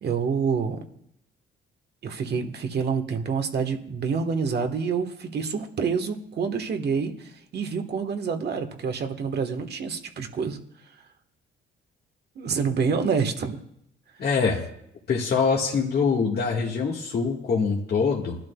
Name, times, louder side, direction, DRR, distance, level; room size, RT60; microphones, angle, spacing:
voice 1, 0.0-0.8 2.0-10.6 12.3-13.6, right 5 dB, 55° right, 5 dB, 1.5 m, -27 dB
voice 2, 14.2-14.6 15.1-18.4, left 5 dB, 55° left, -3 dB, 1.8 m, -24 dB
21.0 x 12.0 x 2.4 m, 0.74 s
cardioid pair, 90°, 20 cm